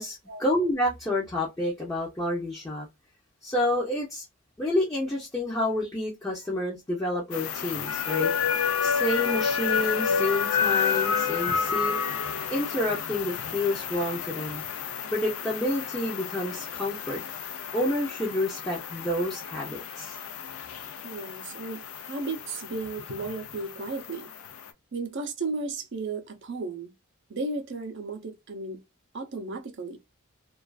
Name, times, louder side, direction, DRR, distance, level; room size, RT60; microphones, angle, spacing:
voice 1, 0.0-2.9 3.4-4.2 4.6-8.3 8.8-12.0 12.5-14.6 15.1-17.2 17.7-20.2, left 1 dB, 15° left, 0.6 m, -29 dB
sound 1, 7.3-24.7, left 7 dB, 70° left, 0.4 m, -30 dB
voice 2, 21.0-24.3 24.9-26.9 27.3-28.8 29.1-30.0, right 3 dB, 55° right, 0.5 m, -34 dB
2.4 x 2.3 x 2.3 m
head